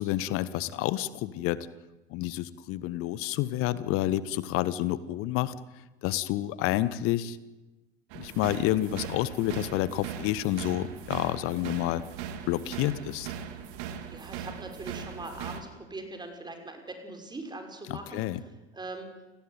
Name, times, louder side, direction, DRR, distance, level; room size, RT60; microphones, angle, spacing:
voice 1, 0.0-1.7 2.1-5.5 6.0-7.4 8.1-12.0 12.5-13.3 17.9-18.4, left 14 dB, 45° left, 16 dB, 1.4 m, -29 dB
sound 1, 8.1-15.6, right 8 dB, 50° right, 3.1 m, -39 dB
voice 2, 14.1-18.2 18.7-19.1, right 2 dB, 15° right, 5 dB, 6.0 m, -41 dB
30.0 x 19.5 x 9.4 m, 1.1 s
figure-of-eight pair, 80°, 31 cm